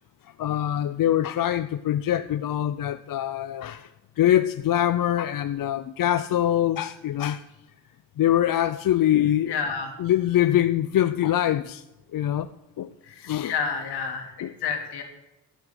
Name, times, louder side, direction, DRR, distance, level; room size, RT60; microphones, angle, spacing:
voice 1, 0.4-3.9 4.2-7.4 8.2-9.6 10.0-11.8 12.1-12.5 12.8-12.9 13.2-13.5 14.4-14.5, left 12 dB, 55° left, 0.6 m, -23 dB
voice 2, 9.5-9.9 13.1-13.2 13.4-14.3 14.6-15.0, left 6 dB, 75° left, 3.1 m, -29 dB
12.5 x 8.0 x 8.0 m
cardioid pair, 90°, 39 cm